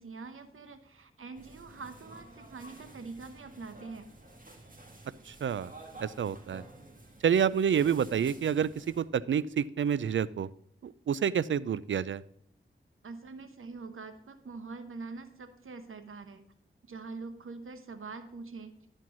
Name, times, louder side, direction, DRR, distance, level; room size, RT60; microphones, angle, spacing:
voice 1, 0.0-4.1 13.0-16.4 16.9-18.7, right 4 dB, 80° right, 9 dB, 0.9 m, -44 dB
sound 1, 1.3-9.0, right 2 dB, 40° right, 2.0 m, -51 dB
voice 2, 5.3-5.7 6.0-6.6 7.2-10.5 10.8-12.2, right 8 dB, 65° right, 19 dB, 0.4 m, -28 dB
11.0 x 4.5 x 6.1 m, 0.68 s
cardioid pair, 45°, 21 cm